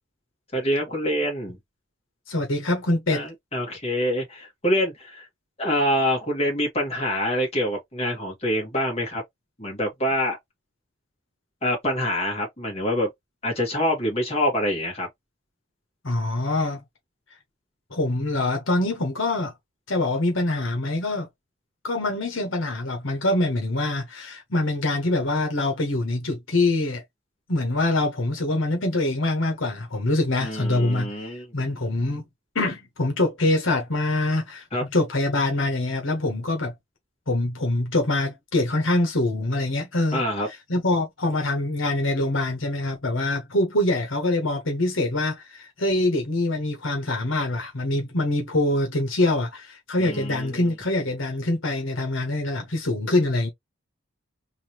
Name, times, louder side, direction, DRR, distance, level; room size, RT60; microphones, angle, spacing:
voice 1, 0.5-1.6 3.1-5.3 5.6-9.2 9.6-10.4 11.6-13.1 13.4-15.1 30.4-31.4 34.7-34.8 40.1-40.5 50.0-50.7, equal, 30° left, 1.9 m, -26 dB
voice 2, 2.3-3.2 16.0-16.8 17.9-19.5 19.9-21.3 21.8-27.0 27.5-31.1 31.5-32.2 32.5-34.6 34.9-36.7 37.3-40.2 40.7-53.5, left 2 dB, 70° left, 1.4 m, -24 dB
3.9 x 2.8 x 3.1 m
head